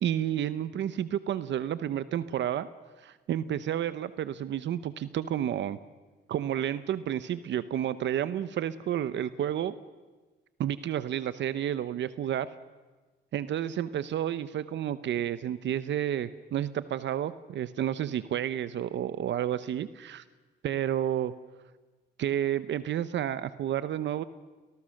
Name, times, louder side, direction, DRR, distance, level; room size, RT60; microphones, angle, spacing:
voice 1, 0.0-2.7 3.0-5.8 6.3-9.8 10.6-12.5 13.3-20.2 20.6-21.3 22.2-24.2, right 10 dB, 65° right, 14 dB, 0.8 m, -30 dB
29.5 x 19.0 x 6.5 m, 1.3 s
cardioid pair, 90°, 20 cm